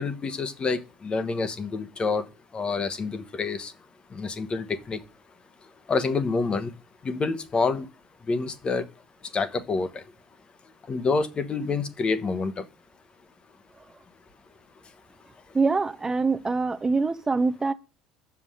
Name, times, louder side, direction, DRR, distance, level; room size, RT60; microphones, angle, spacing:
voice 1, 0.0-2.2 2.5-3.7 4.1-5.0 5.9-6.7 7.0-7.9 8.3-8.9 9.3-10.0 10.9-12.6, left 4 dB, 35° left, 1.0 m, -27 dB
voice 2, 15.5-17.7, right 4 dB, 20° right, 0.6 m, -24 dB
6.8 x 5.8 x 6.4 m
hypercardioid pair, 70°, 3 cm